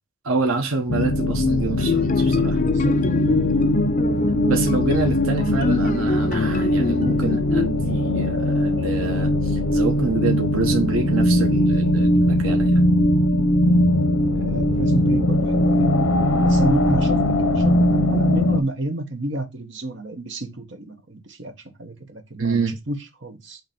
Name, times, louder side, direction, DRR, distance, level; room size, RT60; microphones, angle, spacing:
voice 1, 0.2-2.6 4.5-12.7 22.4-22.7, right 3 dB, 80° right, 1.1 m, -26 dB
sound 1, 0.9-18.6, left 1 dB, 80° left, 0.9 m, -20 dB
sound 2, 1.8-7.7, left 3 dB, 35° left, 0.4 m, -24 dB
voice 2, 2.6-2.9 14.3-15.9 16.4-21.5 21.8-23.6, right 2 dB, 55° right, 1.2 m, -30 dB
7.9 x 3.1 x 4.4 m
head